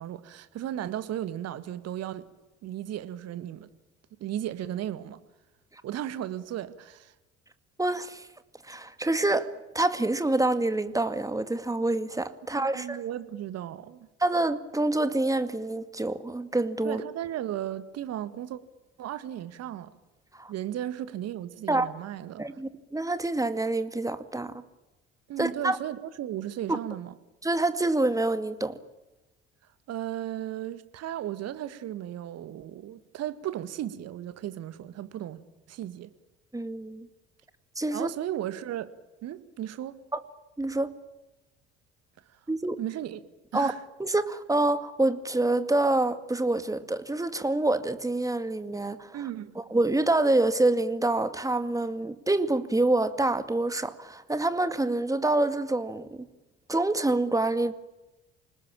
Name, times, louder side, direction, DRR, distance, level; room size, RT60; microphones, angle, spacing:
voice 1, 0.0-2.3 2.6-3.7 4.2-5.2 5.8-7.1 12.5-14.1 16.8-18.6 19.0-19.9 20.5-22.4 25.3-27.1 29.9-35.4 35.7-36.1 37.9-38.9 39.2-40.0 42.8-43.2 43.5-43.8 49.1-49.5, right 11 dB, 50° right, 1.9 m, -35 dB
voice 2, 7.8-8.3 8.6-13.0 14.2-17.0 20.3-20.5 21.7-21.9 22.4-24.5 25.4-25.8 26.7-26.8 27.4-28.8 36.5-37.1 37.8-38.1 40.1-40.2 40.6-40.9 42.5-42.8 43.5-43.7 44.0-49.2 49.6-56.3 56.7-57.7, right 2 dB, 10° right, 2.1 m, -26 dB
28.0 x 20.0 x 8.9 m
figure-of-eight pair, 55°, 33 cm